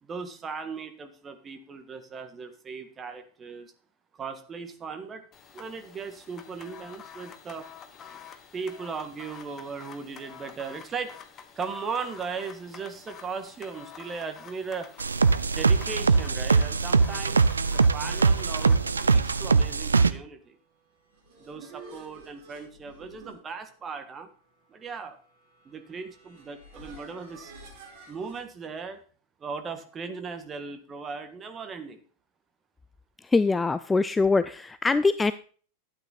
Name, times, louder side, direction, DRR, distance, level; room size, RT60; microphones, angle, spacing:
voice 1, 0.0-3.7 4.2-5.2 5.5-7.7 8.5-11.1 11.5-14.9 15.4-20.6 21.4-24.3 24.7-25.2 25.6-27.5 28.1-29.0 29.4-32.0, right 5 dB, 20° right, 7 dB, 1.6 m, -37 dB
sound 1, 5.3-19.8, left 7 dB, 25° left, 1.3 m, -48 dB
sound 2, 15.0-20.1, right 4 dB, 75° right, 0.5 m, -22 dB
sound 3, 20.9-28.4, right 2 dB, 40° right, 5.1 m, -50 dB
voice 2, 33.3-35.3, left 3 dB, 10° left, 14 dB, 0.4 m, -23 dB
12.5 x 8.9 x 4.1 m, 0.43 s
figure-of-eight pair, 90°, 0 cm